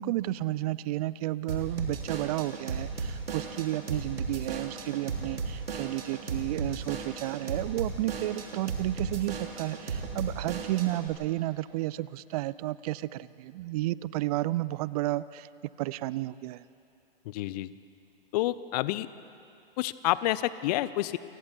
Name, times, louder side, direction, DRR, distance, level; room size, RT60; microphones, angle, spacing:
voice 1, 0.0-15.5 15.8-16.6, right 16 dB, 40° right, 18 dB, 0.6 m, -32 dB
Drum kit / Drum, 1.5-11.1, right 4 dB, 75° right, 3.0 m, -35 dB
voice 2, 17.3-17.7 18.3-19.1 19.8-21.2, left 16 dB, 45° left, 16 dB, 0.8 m, -28 dB
29.5 x 24.5 x 4.5 m, 2.6 s
figure-of-eight pair, 110°, 29 cm